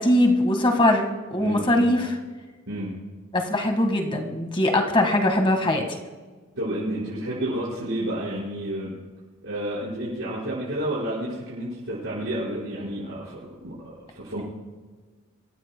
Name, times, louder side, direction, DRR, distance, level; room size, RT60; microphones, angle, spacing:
voice 1, 0.0-2.1 3.3-6.0, left 1 dB, 25° left, 4 dB, 1.7 m, -21 dB
voice 2, 1.4-1.9 2.7-2.9 6.5-8.9 9.4-14.4, right 1 dB, 70° right, -10 dB, 5.3 m, -30 dB
25.0 x 15.0 x 2.3 m, 1.4 s
head